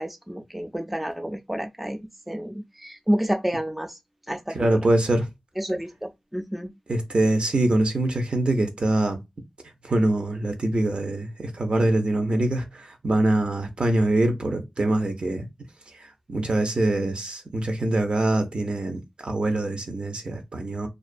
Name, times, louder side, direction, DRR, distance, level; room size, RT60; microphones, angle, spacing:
voice 1, 0.0-4.0 4.3-4.8 5.6-6.7, equal, 5° right, 0.3 m, -29 dB
voice 2, 4.5-5.2 6.9-9.2 9.8-15.4 16.3-20.9, right 1 dB, 60° right, 0.6 m, -24 dB
2.3 x 2.3 x 2.5 m
wide cardioid pair, 80°, 2 cm